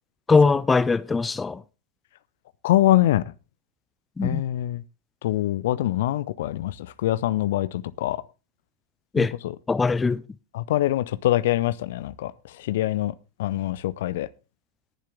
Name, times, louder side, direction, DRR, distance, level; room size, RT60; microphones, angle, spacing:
voice 1, 0.3-1.6 4.2-4.4 9.1-9.3 9.7-10.2, left 4 dB, 15° left, 0.5 m, -21 dB
voice 2, 2.6-3.2 4.2-4.8 5.2-8.2 9.2-9.5 10.5-12.3 12.6-13.1 13.4-14.3, left 14 dB, 55° left, 0.6 m, -24 dB
18.5 x 7.4 x 3.6 m
figure-of-eight pair, 90°, 0 cm